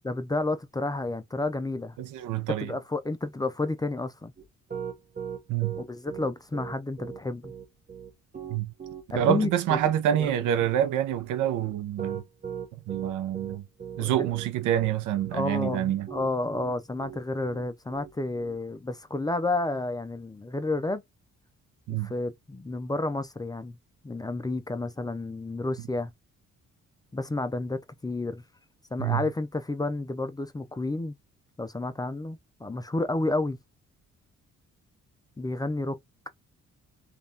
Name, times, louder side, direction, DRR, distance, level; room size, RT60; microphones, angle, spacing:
voice 1, 0.1-2.0 2.6-4.3 5.8-7.5 9.1-9.8 10.2-10.3 14.0-14.3 15.3-21.0 21.9-23.8 24.0-26.1 27.1-28.4 28.9-31.2 31.6-33.6 35.4-36.0, left 2 dB, 15° left, 0.4 m, -31 dB
voice 2, 2.0-2.7 5.5-5.8 8.5-8.7 9.1-12.2 12.9-13.6 14.0-16.1 21.9-22.1 29.0-29.2, right 10 dB, 85° right, 0.6 m, -27 dB
Piano, 4.4-18.6, right 7 dB, 30° right, 0.8 m, -39 dB
3.3 x 2.5 x 2.7 m
cardioid pair, 90°, 30 cm